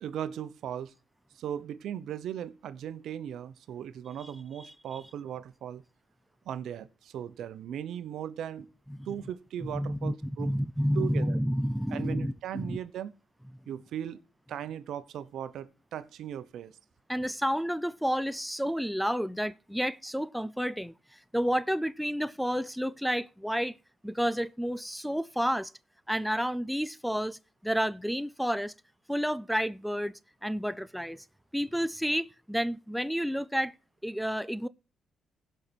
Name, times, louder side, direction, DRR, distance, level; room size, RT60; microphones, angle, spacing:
voice 1, 0.0-0.9 1.4-5.8 6.4-8.7 9.1-10.5 10.9-11.4 11.9-13.1 13.7-14.2 14.5-16.7, right 10 dB, 75° right, 0.9 m, -38 dB
voice 2, 4.6-5.0 8.9-9.1 9.6-12.8 17.1-23.8 24.0-25.7 26.1-28.7 29.1-31.2 31.5-33.7 34.0-34.7, equal, ahead, 0.4 m, -30 dB
16.0 x 5.7 x 4.5 m
cardioid pair, 90°, 0 cm